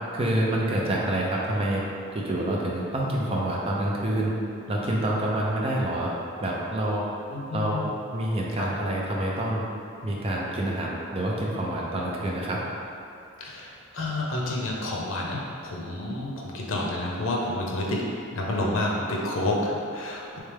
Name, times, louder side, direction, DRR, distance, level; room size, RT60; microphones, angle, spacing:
voice 1, 0.1-1.8 2.1-4.3 4.7-6.1 6.4-7.0 7.5-7.8 8.1-9.6 10.0-12.6, right 1 dB, 30° right, -3 dB, 0.5 m, -27 dB
voice 2, 7.3-8.0 8.6-8.7 13.4-18.0 18.3-20.4, left 1 dB, 75° left, -3 dB, 0.7 m, -29 dB
3.3 x 3.3 x 3.3 m, 2.6 s
head